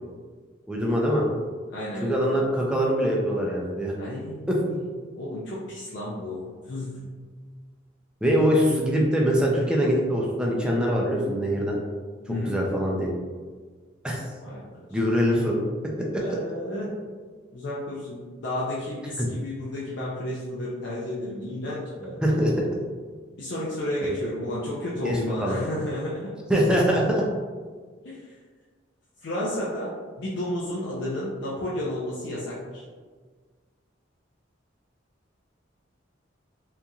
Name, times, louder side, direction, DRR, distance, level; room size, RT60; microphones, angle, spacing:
voice 1, 0.7-1.3 2.0-3.9 4.5-4.6 8.2-11.8 12.3-13.1 14.0-14.2 14.9-15.6 19.2-19.3 22.2-22.5 25.0-25.6 26.5-27.2, equal, 5° right, -3 dB, 0.4 m, -23 dB
voice 2, 1.7-2.2 4.0-4.8 5.2-7.0 12.3-12.6 14.4-14.6 14.9-15.0 15.3-15.6 16.2-16.9 17.5-22.2 23.4-26.3 28.0-28.3 29.2-32.8, left 1 dB, 60° left, -6 dB, 0.4 m, -32 dB
2.9 x 2.5 x 2.3 m, 1.5 s
head